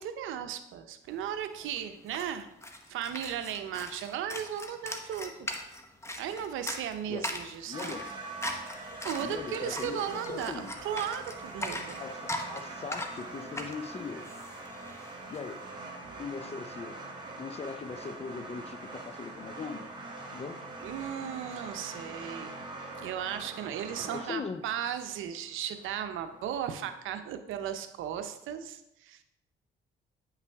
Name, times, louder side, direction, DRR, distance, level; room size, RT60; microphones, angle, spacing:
voice 1, 0.0-2.5 2.9-5.5 6.2-8.0 9.0-12.0 16.0-16.2 20.8-22.6 23.0-29.2, right 9 dB, 85° right, 0.7 m, -36 dB
sound 1, 1.3-1.4 1.5-15.4, left 1 dB, 15° left, 1.0 m, -40 dB
voice 2, 7.7-8.1 9.2-10.7 12.0-14.3 15.3-15.6 16.2-17.0 17.4-19.9 20.3-20.6 24.0-24.6, left 5 dB, 30° left, 0.5 m, -40 dB
sound 2, 7.7-26.5, right 2 dB, 25° right, 1.7 m, -43 dB
9.3 x 5.7 x 3.5 m
cardioid pair, 90°, 20 cm